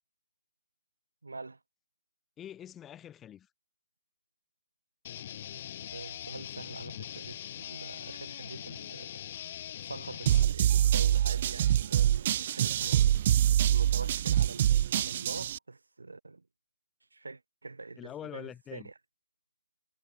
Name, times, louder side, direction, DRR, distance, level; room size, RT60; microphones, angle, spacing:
voice 1, 1.2-1.6 5.9-9.2 9.8-13.2 13.7-16.4 17.1-18.9, right 3 dB, 75° right, 5.0 m, -44 dB
voice 2, 2.4-3.5 18.0-18.9, left 10 dB, 10° left, 1.4 m, -44 dB
sound 1, 5.0-10.4, left 11 dB, 35° left, 2.1 m, -42 dB
sound 2, 10.3-15.6, right 11 dB, 35° right, 0.7 m, -25 dB
figure-of-eight pair, 150°, 0 cm